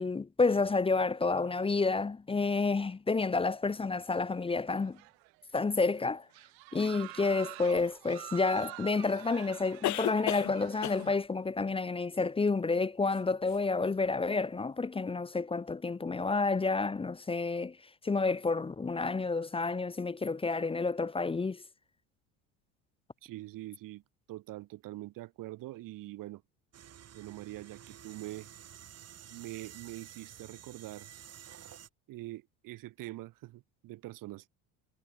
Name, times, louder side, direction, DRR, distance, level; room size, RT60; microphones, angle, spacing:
voice 1, 0.0-5.0 5.5-6.2 6.7-17.8 18.0-21.6, left 3 dB, 15° left, 0.8 m, -30 dB
sound 1, 4.6-5.4 5.7-5.9 6.3-11.2, right 36 dB, 85° right, 6.1 m, -47 dB
sound 2, 7.8-7.9 9.8-10.5 10.8-11.1 13.1-13.2 13.5-13.6, left 16 dB, 55° left, 0.8 m, -33 dB
voice 2, 23.2-24.0 24.3-26.4 27.1-28.5 29.3-31.1 32.1-34.5, right 17 dB, 65° right, 5.3 m, -44 dB
sound 3, 26.7-31.9, right 10 dB, 45° right, 3.6 m, -51 dB
supercardioid pair, 100°, 35 cm